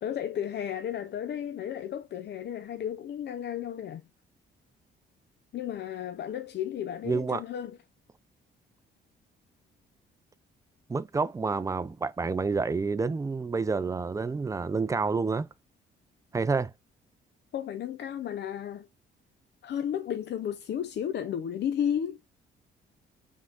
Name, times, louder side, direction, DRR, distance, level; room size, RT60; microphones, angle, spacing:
voice 1, 0.0-4.0 5.5-7.8 17.5-18.9 19.6-22.2, left 9 dB, 60° left, 0.5 m, -33 dB
voice 2, 7.0-7.4 10.9-15.5 16.3-16.7, right 4 dB, 15° right, 0.4 m, -28 dB
5.6 x 3.7 x 2.4 m
cardioid pair, 90°, 20 cm